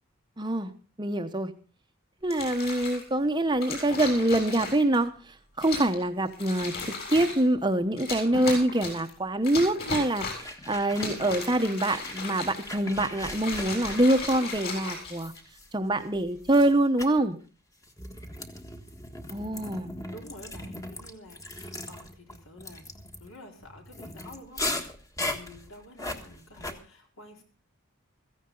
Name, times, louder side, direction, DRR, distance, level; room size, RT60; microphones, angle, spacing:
voice 1, 0.4-0.7 1.0-1.5 2.2-15.3 15.7-17.4 19.3-19.9, right 1 dB, 20° right, 8 dB, 0.9 m, -25 dB
sound 1, 2.2-3.0 3.6-5.0 5.6-6.0 6.3-7.4 8.0-9.1 9.4-10.5 10.9-12.8 13.2-15.6 16.3-16.7, left 3 dB, 45° left, 7.1 m, -36 dB
sound 2, 10.0-11.5 11.8-16.0 16.4-16.7 17.0-17.2 17.8-26.7, left 2 dB, 15° left, 1.4 m, -38 dB
voice 2, 20.1-22.9 23.2-24.8 25.2-27.4, left 1 dB, 70° left, 2 dB, 4.2 m, -49 dB
16.0 x 15.0 x 3.8 m, 0.36 s
head